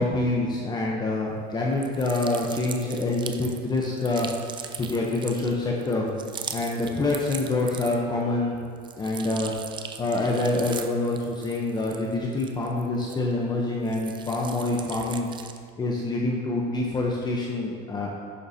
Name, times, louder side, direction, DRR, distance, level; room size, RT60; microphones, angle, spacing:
voice 1, 0.0-4.3 4.8-6.1 6.5-8.6 9.0-9.5 10.0-15.3 15.8-18.1, left 2 dB, 20° left, -2 dB, 0.7 m, -26 dB
sound 1, 1.7-8.2 8.6-13.5 13.8-15.7, right 7 dB, 20° right, 0.4 m, -40 dB
10.5 x 6.8 x 2.7 m, 2.2 s
cardioid pair, 140°, 21 cm